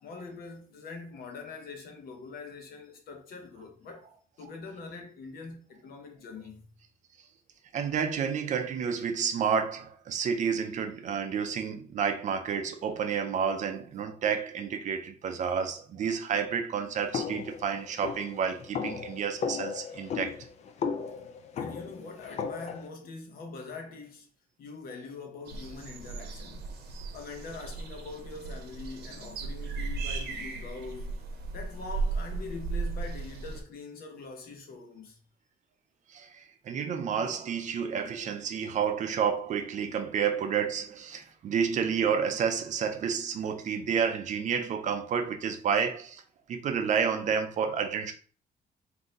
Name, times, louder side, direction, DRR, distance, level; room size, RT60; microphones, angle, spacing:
voice 1, 0.0-4.1 4.4-6.7 21.5-24.3 24.6-26.7 27.1-31.2 31.5-35.2, left 4 dB, 65° left, 1.0 m, -43 dB
voice 2, 7.7-20.4 36.1-46.2 46.5-48.1, right 7 dB, 45° right, 0.5 m, -30 dB
sound 1, 17.1-22.9, left 6 dB, 45° left, 0.4 m, -35 dB
sound 2, 25.5-33.6, right 4 dB, 80° right, 0.9 m, -36 dB
3.9 x 2.7 x 3.7 m
cardioid pair, 180°, 17 cm